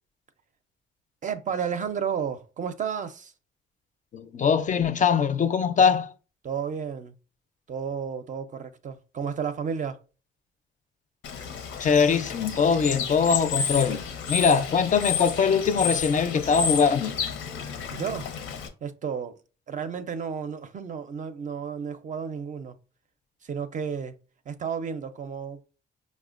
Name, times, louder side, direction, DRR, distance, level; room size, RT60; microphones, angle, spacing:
voice 1, 1.2-3.3 6.4-7.2 7.7-10.0 17.9-18.3 18.8-19.4 19.7-22.8 23.4-24.1 24.5-25.6, right 7 dB, 40° right, 0.4 m, -32 dB
voice 2, 4.1-6.1 11.8-14.0 14.3-17.2, left 6 dB, 40° left, 0.4 m, -22 dB
Bird / Water, 11.2-18.7, left 6 dB, 85° left, 0.7 m, -31 dB
4.9 x 2.1 x 2.4 m
cardioid pair, 90°, 20 cm